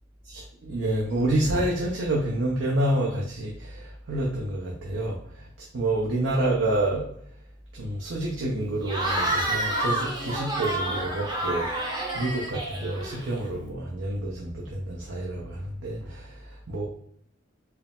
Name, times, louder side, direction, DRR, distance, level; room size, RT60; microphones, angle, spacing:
voice 1, 0.2-7.1 7.7-16.8, right 1 dB, 70° right, -3 dB, 0.7 m, -28 dB
Cheering / Crowd, 8.8-13.5, right 1 dB, 20° right, 0.7 m, -29 dB
4.6 x 2.1 x 3.6 m, 0.67 s
head